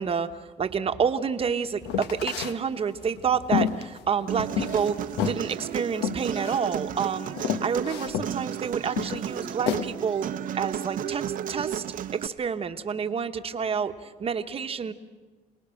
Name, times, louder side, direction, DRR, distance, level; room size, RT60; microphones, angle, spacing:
voice 1, 0.0-5.0 5.3-10.3 10.5-11.8 12.1-14.9, right 6 dB, 35° right, 8 dB, 1.1 m, -29 dB
sound 1, 1.8-2.6 3.0-4.9 5.2-5.4 6.0-6.6 7.0-7.1 7.4-8.3 9.0-9.8, left 9 dB, 85° left, 1.1 m, -29 dB
Human voice, 4.3-12.3, right 9 dB, 55° right, 0.7 m, -33 dB
27.0 x 19.0 x 6.4 m, 1.3 s
cardioid pair, 110°, 17 cm